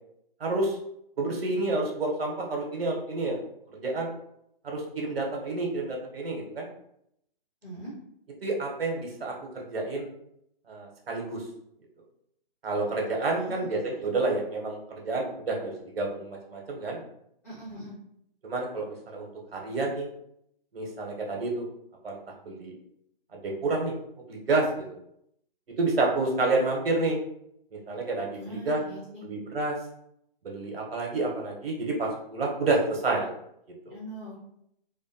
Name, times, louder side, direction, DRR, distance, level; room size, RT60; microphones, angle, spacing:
voice 1, 0.4-0.8 1.2-3.4 3.7-4.1 4.6-6.7 8.4-10.1 10.7-11.4 12.6-17.0 18.4-20.1 20.7-21.6 22.0-22.7 23.3-23.9 24.3-24.8 25.8-27.2 27.7-28.8 29.2-29.8 30.4-33.3 33.9-34.0, right 2 dB, 75° right, 0 dB, 0.9 m, -29 dB
voice 2, 13.3-13.7 17.4-17.9 28.3-29.2 33.9-34.4, right 1 dB, 15° left, -12 dB, 1.2 m, -41 dB
2.6 x 2.2 x 2.6 m, 0.74 s
hypercardioid pair, 180°, 30 cm